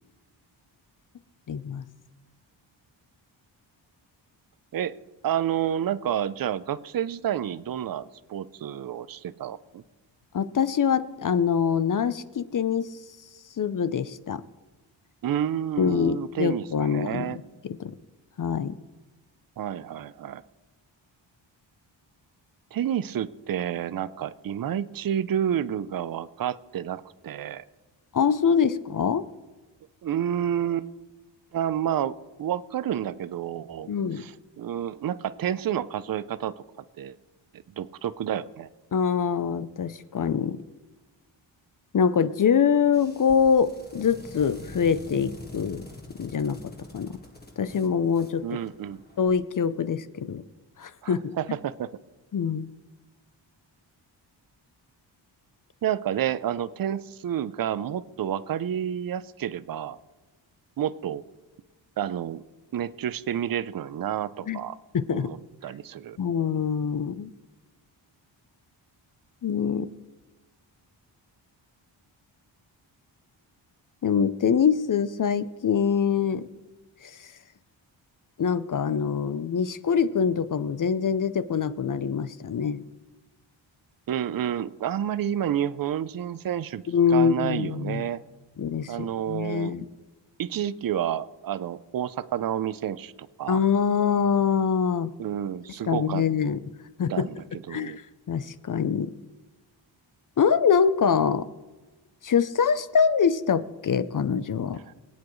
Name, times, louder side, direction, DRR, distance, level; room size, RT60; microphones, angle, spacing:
voice 1, 1.5-1.8 10.3-12.9 13.6-14.4 15.8-17.3 17.6-17.9 18.4-18.8 28.1-29.2 33.9-34.2 38.9-40.6 41.9-45.8 46.2-47.2 47.6-48.6 49.2-50.4 50.8-51.3 52.3-52.7 64.5-64.6 64.9-65.3 66.2-67.3 69.4-69.9 74.0-76.5 77.0-77.3 78.4-82.8 86.9-88.0 88.6-89.8 93.5-95.1 95.8-96.6 97.0-97.3 97.7-98.0 98.3-99.1 100.4-101.4 102.2-104.8, left 7 dB, 45° left, 14 dB, 0.6 m, -24 dB
voice 2, 5.2-9.8 15.2-17.4 19.6-20.4 22.7-27.6 30.0-30.9 31.5-33.9 34.1-36.6 37.0-37.2 37.8-38.7 48.4-49.0 51.0-51.9 55.8-60.0 60.8-61.2 62.0-62.4 62.7-64.8 65.1-66.2 84.1-86.8 87.1-88.2 88.9-89.7 90.4-93.1 93.4-93.6 95.2-96.2 97.1-98.0 104.8-104.9, right 10 dB, 50° right, 17 dB, 0.6 m, -29 dB
sound 1, 42.8-49.3, left 2 dB, 20° left, 1.7 m, -45 dB
23.5 x 8.4 x 3.1 m, 1.2 s
cardioid pair, 80°, 47 cm